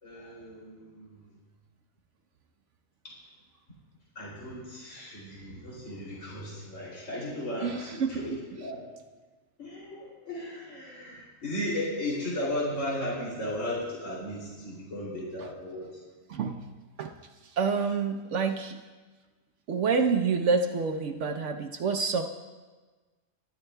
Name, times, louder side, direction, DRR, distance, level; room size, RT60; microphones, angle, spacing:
voice 1, 0.0-1.2 3.0-3.1 4.1-8.8 9.6-16.0, left 1 dB, 60° left, -6 dB, 3.1 m, -35 dB
voice 2, 7.6-8.4 16.3-16.6 17.0-17.1 17.4-18.8 19.7-22.2, right 5 dB, 65° right, 5 dB, 0.9 m, -28 dB
22.5 x 11.5 x 2.2 m, 1.3 s
omnidirectional pair, 1.4 m